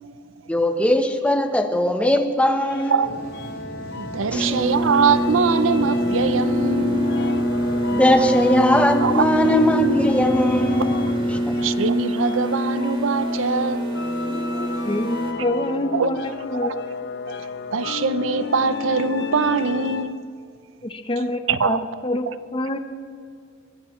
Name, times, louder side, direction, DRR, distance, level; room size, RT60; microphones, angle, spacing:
voice 1, 0.5-3.2 4.3-4.5 7.9-11.0 11.5-11.6, left 1 dB, 5° left, 1.1 m, -20 dB
sound 1, 2.6-20.3, left 5 dB, 60° left, 0.7 m, -32 dB
sound 2, 3.0-11.6, equal, 55° right, 5.1 m, -36 dB
voice 2, 4.0-7.1 9.0-9.3 11.6-13.9 15.9-16.2 17.3-17.4 17.7-20.2 21.5-21.8, right 5 dB, 90° right, 0.7 m, -22 dB
sound 3, 4.3-15.3, right 1 dB, 25° right, 2.3 m, -24 dB
voice 3, 14.8-16.7 20.8-22.2 22.5-22.8, left 1 dB, 25° left, 0.9 m, -26 dB
24.0 x 17.5 x 3.2 m
head